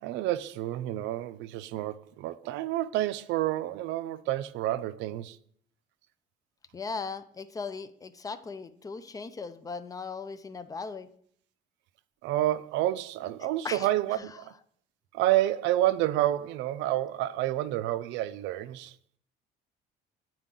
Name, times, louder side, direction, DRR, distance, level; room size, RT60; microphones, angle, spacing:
voice 1, 0.0-5.4 12.2-14.5 15.1-18.9, right 14 dB, 80° right, 0.4 m, -29 dB
voice 2, 6.7-11.1 13.4-14.4, left 4 dB, 20° left, 0.4 m, -38 dB
9.5 x 4.5 x 3.8 m
cardioid pair, 145°, 18 cm